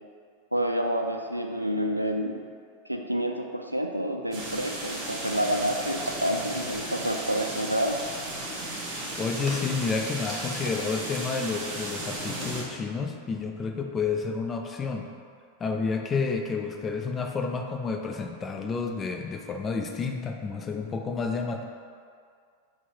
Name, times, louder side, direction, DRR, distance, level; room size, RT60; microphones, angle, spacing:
voice 1, 0.5-2.3 2.9-8.0, equal, 90° right, 3 dB, 0.3 m, -28 dB
sound 1, 4.3-12.6, right 1 dB, 25° right, 1.2 m, -35 dB
voice 2, 9.2-15.1 15.6-21.6, left 5 dB, 20° left, 3 dB, 0.4 m, -30 dB
5.5 x 2.1 x 4.4 m, 2.1 s
figure-of-eight pair, 90°, 0 cm